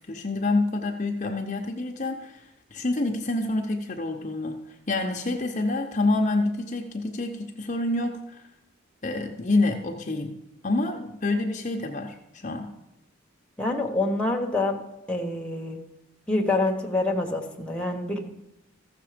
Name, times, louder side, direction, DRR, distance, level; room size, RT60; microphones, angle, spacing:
voice 1, 0.1-2.4 2.7-4.6 4.9-8.4 9.0-10.4 10.6-12.7, left 2 dB, 35° left, 2 dB, 0.8 m, -27 dB
voice 2, 13.6-14.8 15.1-15.8 16.3-18.2, left 2 dB, 5° left, 1 dB, 1.2 m, -26 dB
14.5 x 6.7 x 5.0 m, 0.95 s
head